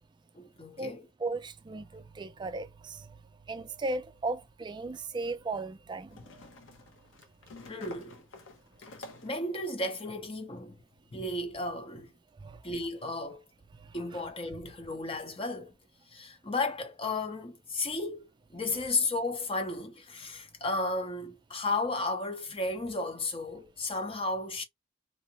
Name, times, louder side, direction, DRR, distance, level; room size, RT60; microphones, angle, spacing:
voice 1, 0.3-1.1 7.7-8.2 9.2-10.8 11.1-12.1 12.6-13.4 13.9-15.7 16.1-18.3 18.5-24.6, left 2 dB, 30° left, 0.7 m, -33 dB
voice 2, 1.2-3.1 3.5-6.2 12.4-12.6 14.1-14.2, right 3 dB, 25° right, 0.3 m, -36 dB
sound 1, 4.1-4.2 6.1-9.5, left 2 dB, 80° left, 0.7 m, -50 dB
2.7 x 2.1 x 2.8 m
head